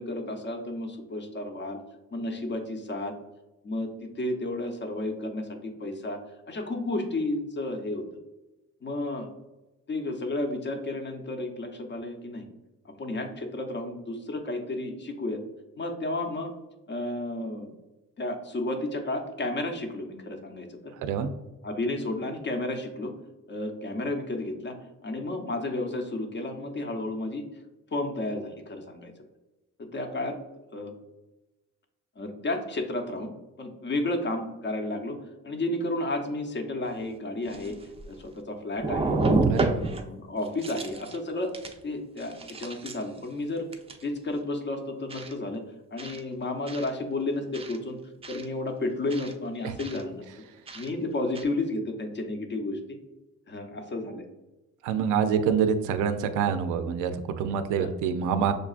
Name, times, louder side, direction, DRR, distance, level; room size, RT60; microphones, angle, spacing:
voice 1, 0.0-1.8 2.1-3.1 3.6-6.2 6.5-8.1 8.8-9.3 9.9-12.5 12.8-15.4 15.8-16.5 16.9-17.8 18.2-20.9 21.6-23.1 23.5-24.8 25.0-27.4 27.9-29.1 29.8-30.4 30.7-30.9 32.2-33.3 33.6-35.2 35.4-37.8 38.1-39.2 39.6-41.5 41.8-43.7 44.0-45.6 45.9-48.0 48.3-50.3 50.7-53.0 53.5-54.3 57.8-57.9, left 2 dB, 35° left, 4 dB, 0.7 m, -32 dB
sound 1, 36.9-37.0 37.5-38.4 38.8-40.1 40.4-41.2 41.5-41.8 42.2-43.2 43.7-44.0 45.1-45.3 46.0-46.2 46.7-46.9 47.5-47.8 48.2-48.5 49.1-49.3 49.8-50.0 50.7-50.9 51.3-51.4, right 3 dB, 20° right, 0.4 m, -30 dB
voice 2, 39.5-39.8 49.6-49.7 54.8-58.5, right 7 dB, 90° right, 9 dB, 0.5 m, -26 dB
6.4 x 2.3 x 2.4 m, 1.0 s
cardioid pair, 90°, 30 cm